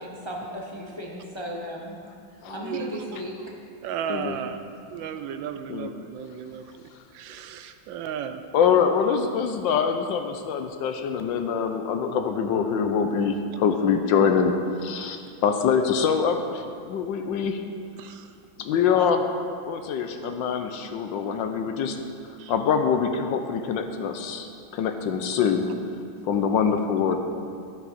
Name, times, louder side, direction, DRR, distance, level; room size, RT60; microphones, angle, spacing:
voice 1, 0.0-1.9 2.5-3.4, equal, 25° left, -2 dB, 0.6 m, -35 dB
voice 2, 2.5-3.1 3.8-4.6 4.9-6.7 7.1-8.4 15.0-15.1 18.0-18.3 19.0-19.1 20.2-20.3 22.4-22.5, right 8 dB, 75° right, 9 dB, 1.2 m, -34 dB
voice 3, 8.5-14.5 14.8-15.2 15.4-17.6 18.6-19.2 19.7-22.0 22.5-24.5 24.7-25.6 26.2-27.2, left 6 dB, 75° left, 6 dB, 1.3 m, -24 dB
11.0 x 10.5 x 4.2 m, 2.4 s
omnidirectional pair, 2.2 m